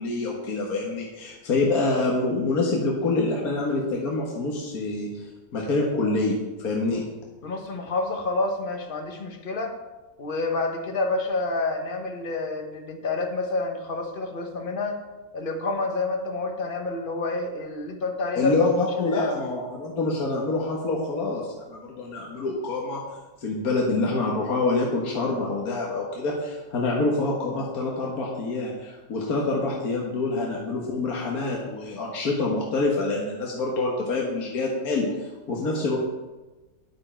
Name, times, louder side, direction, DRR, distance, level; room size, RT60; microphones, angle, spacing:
voice 1, 0.0-7.0 18.4-23.0 23.4-36.0, left 3 dB, 65° left, -2 dB, 1.8 m, -26 dB
voice 2, 7.4-9.8 10.2-15.0 15.3-18.7 19.0-19.3, left 3 dB, 35° left, 4 dB, 1.3 m, -28 dB
9.8 x 9.7 x 4.5 m, 1.2 s
omnidirectional pair, 1.7 m